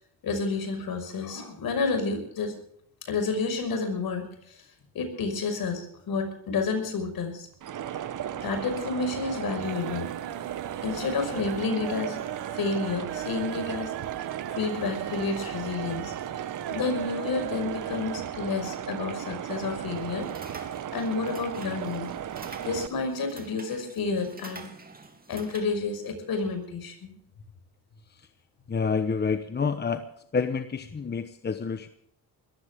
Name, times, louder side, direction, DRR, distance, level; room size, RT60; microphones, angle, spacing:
voice 1, 0.2-2.5 3.1-4.6 4.9-7.5 8.4-10.1 10.8-12.2 12.5-13.9 14.2-16.1 16.7-20.3 20.9-22.1 22.6-24.7 25.3-27.1, left 4 dB, 60° left, 7 dB, 5.7 m, -30 dB
sound 1, 7.5-8.1 8.4-9.0 9.3-18.3 18.6-18.7 19.0-19.1, right 14 dB, 90° right, 1.3 m, -40 dB
sound 2, 7.6-22.9, right 10 dB, 50° right, 1.1 m, -36 dB
sound 3, 20.0-25.6, right 3 dB, 20° right, 2.6 m, -47 dB
voice 2, 28.7-30.1 30.3-31.9, left 5 dB, 25° left, 10 dB, 1.0 m, -28 dB
21.0 x 15.0 x 3.6 m, 0.69 s
cardioid pair, 95°, 40 cm